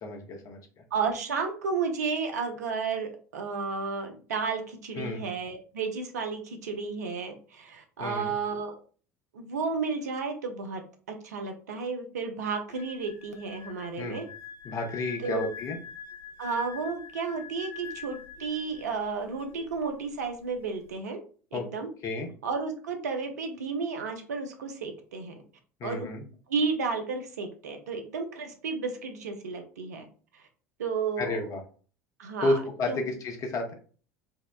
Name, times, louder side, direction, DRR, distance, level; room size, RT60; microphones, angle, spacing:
voice 1, 0.0-0.8 5.0-5.2 8.0-8.3 14.0-14.2 14.6-15.8 21.5-21.6 22.0-22.3 25.8-26.2 31.2-31.6 32.4-33.7, left 2 dB, 40° left, 3 dB, 0.6 m, -31 dB
voice 2, 0.9-8.7 9.3-10.8 11.2-14.3 15.2-15.5 16.4-21.2 21.5-21.9 22.4-25.3 25.8-26.1 26.5-30.1 30.3-30.5 30.8-31.4 32.2-32.6 32.9-33.0, right 5 dB, 75° right, 5 dB, 0.5 m, -32 dB
sound 1, 12.7-19.1 19.3-19.6, left 7 dB, 65° left, 0.9 m, -44 dB
2.7 x 2.0 x 2.3 m, 0.40 s
figure-of-eight pair, 70°, 9 cm